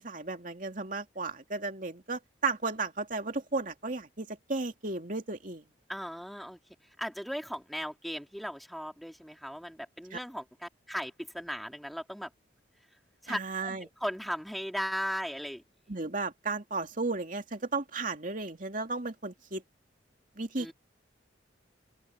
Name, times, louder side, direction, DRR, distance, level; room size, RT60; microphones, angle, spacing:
voice 1, 0.0-5.6 10.1-10.2 13.3-13.9 15.9-19.6 20.4-20.7, right 3 dB, 45° right, 2.6 m, -34 dB
voice 2, 5.9-6.6 7.0-12.3 13.2-15.6 20.6-20.7, equal, ahead, 2.5 m, -37 dB
open air
head